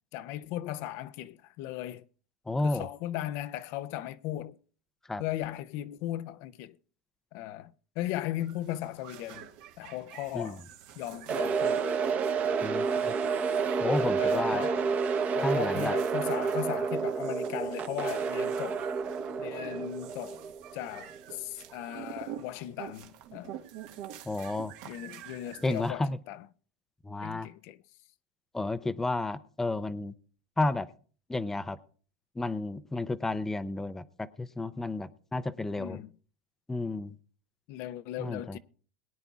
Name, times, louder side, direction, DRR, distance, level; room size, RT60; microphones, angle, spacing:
voice 1, 0.1-2.0 2.6-4.6 5.2-6.8 7.3-9.5 9.8-10.6 11.0-11.9 14.0-14.8 15.3-18.9 19.4-20.4 20.7-23.6 24.8-26.5 27.2-27.8 35.8-36.1 37.7-38.6, left 13 dB, 55° left, 0.5 m, -37 dB
voice 2, 2.5-2.9 5.1-5.2 10.3-10.5 12.6-12.9 13.8-14.6 15.4-15.9 24.3-24.7 25.6-26.2 27.0-27.5 28.5-30.1 30.6-30.9 31.3-31.8 32.4-36.0 36.7-37.1 38.2-38.6, left 2 dB, 5° left, 0.5 m, -31 dB
sound 1, 8.4-25.9, right 10 dB, 65° right, 1.4 m, -48 dB
sound 2, 11.3-21.3, right 5 dB, 30° right, 0.9 m, -30 dB
22.0 x 9.6 x 2.4 m
supercardioid pair, 135°, 5 cm